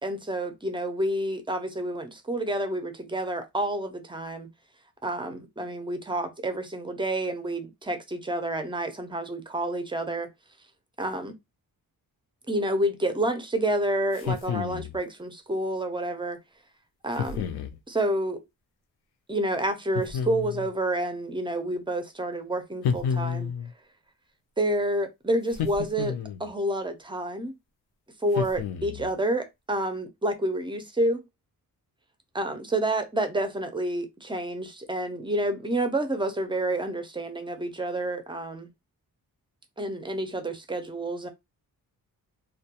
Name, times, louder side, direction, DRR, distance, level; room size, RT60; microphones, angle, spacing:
voice 1, 0.0-4.5 5.0-10.3 11.0-11.3 12.5-16.4 17.0-17.4 17.9-18.4 19.3-23.5 24.6-27.5 28.2-31.2 32.3-38.7 39.8-41.3, right 1 dB, 15° right, 0.4 m, -29 dB
sound 1, 14.1-15.0 17.2-17.8 19.9-20.7 22.8-23.7 25.5-26.5 28.3-29.1, left 7 dB, 85° left, 0.5 m, -30 dB
2.2 x 2.2 x 2.8 m
wide cardioid pair, 110°, 37 cm